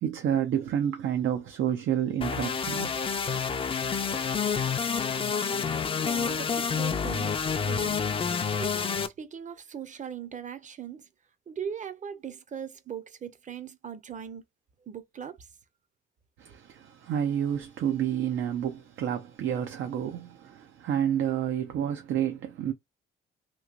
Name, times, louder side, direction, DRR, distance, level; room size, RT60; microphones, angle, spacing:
voice 1, 0.0-3.0 16.4-22.7, right 9 dB, 75° right, 0.6 m, -29 dB
sound 1, 2.2-9.1, left 6 dB, 25° left, 0.5 m, -28 dB
voice 2, 6.0-8.0 8.6-11.1 11.5-14.4 14.9-15.4, right 8 dB, 40° right, 0.7 m, -39 dB
3.0 x 2.8 x 2.4 m
cardioid pair, 90°, 20 cm